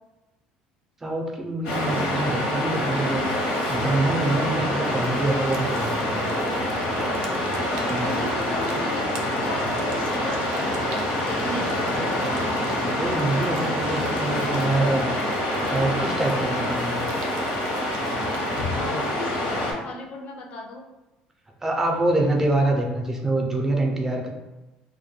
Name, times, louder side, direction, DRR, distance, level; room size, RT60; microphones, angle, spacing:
voice 1, 1.0-3.3 3.7-6.3 7.9-8.2 12.9-15.1 15.7-17.0 21.6-24.3, right 2 dB, 15° right, 1 dB, 0.5 m, -25 dB
Waves surf, 1.6-19.7, left 1 dB, 85° left, 0.9 m, -26 dB
sound 1, 4.8-18.6, right 3 dB, 90° right, 0.4 m, -41 dB
voice 2, 7.8-12.0 18.7-20.8, left 2 dB, 55° left, 2 dB, 0.5 m, -36 dB
2.2 x 2.1 x 3.0 m, 1.0 s
cardioid pair, 130°, 3 cm